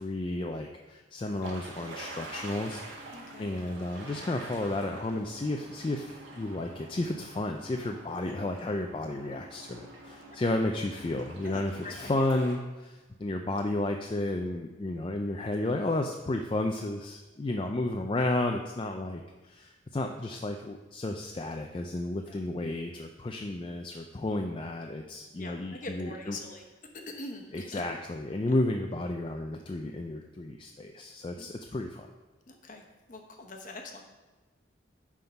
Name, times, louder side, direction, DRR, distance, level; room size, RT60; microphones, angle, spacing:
voice 1, 0.0-3.0 3.4-26.4 27.5-32.1, left 2 dB, 25° left, 3 dB, 0.3 m, -32 dB
sound 1, 1.2-12.6, right 2 dB, 85° right, 1.7 m, -46 dB
voice 2, 3.1-3.5 7.8-8.4 10.2-10.4 11.4-12.3 22.1-22.4 25.4-26.6 27.1-27.8 31.3-31.5 32.5-32.8 33.1-34.0, left 2 dB, 45° left, 2 dB, 1.0 m, -44 dB
9.3 x 3.7 x 5.7 m, 1.2 s
head